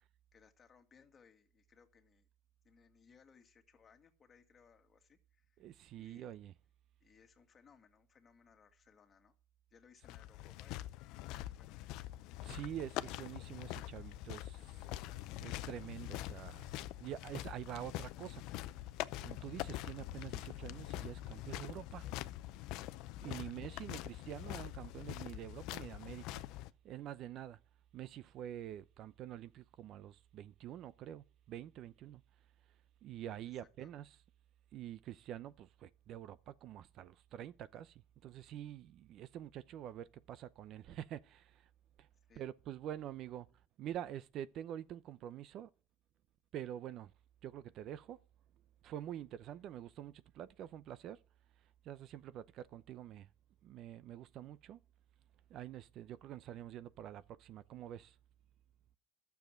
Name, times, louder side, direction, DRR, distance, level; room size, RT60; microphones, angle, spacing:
voice 1, 0.3-2.3 2.6-5.7 5.9-6.3 7.0-9.4 9.7-11.9 23.2-23.8 33.8-33.9 42.3-42.5, left 6 dB, 35° left, 2.0 m, -66 dB
voice 2, 5.6-6.5 12.4-14.9 15.4-18.8 19.2-22.1 23.2-26.4 26.8-27.6 27.9-32.2 33.0-34.2 34.7-41.7 42.0-42.1 42.4-43.5 43.8-45.7 46.5-47.1 47.4-48.2 48.8-51.2 51.6-53.3 53.6-54.8 55.5-58.2, right 11 dB, 60° right, 0.6 m, -47 dB
sound 1, 10.0-26.7, left 15 dB, 75° left, 0.6 m, -44 dB
12.0 x 7.2 x 6.3 m
supercardioid pair, 90°, 0 cm